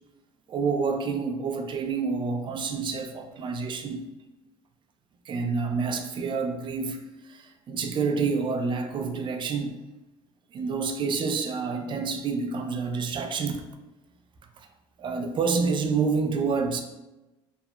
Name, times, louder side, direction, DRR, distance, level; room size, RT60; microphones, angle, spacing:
voice 1, 0.5-4.1 5.3-7.0 7.3-9.8 10.5-13.6 15.0-16.8, right 5 dB, 40° right, 5 dB, 0.4 m, -28 dB
2.7 x 2.3 x 2.2 m, 1.0 s
supercardioid pair, 85°, 12 cm